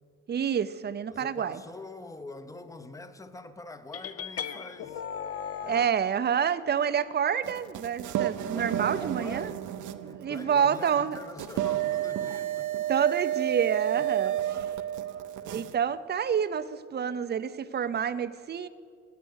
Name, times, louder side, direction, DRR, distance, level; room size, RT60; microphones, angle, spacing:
voice 1, 0.3-1.6 5.7-9.5 10.0-11.2 12.9-14.4 15.5-18.7, right 8 dB, 35° right, 0.5 m, -28 dB
voice 2, 1.1-5.0 5.6-5.9 8.5-13.1 13.9-14.7 15.1-15.7, left 3 dB, 10° left, 0.7 m, -45 dB
sound 1, 3.9-5.9, left 8 dB, 50° left, 0.6 m, -36 dB
sound 2, 7.4-15.7, right 12 dB, 75° right, 0.7 m, -31 dB
15.0 x 9.2 x 6.4 m
cardioid pair, 90°, 30 cm